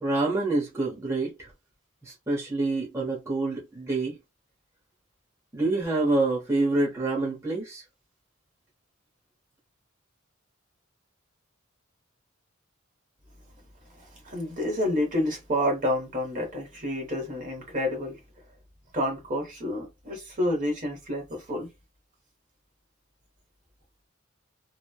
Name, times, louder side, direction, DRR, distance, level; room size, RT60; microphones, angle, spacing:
voice 1, 0.0-1.5 2.0-4.2 5.5-7.8, right 2 dB, 15° right, 0.9 m, -27 dB
voice 2, 14.2-18.2 18.9-21.7, left 1 dB, 40° right, 1.1 m, -29 dB
3.0 x 2.1 x 2.2 m
head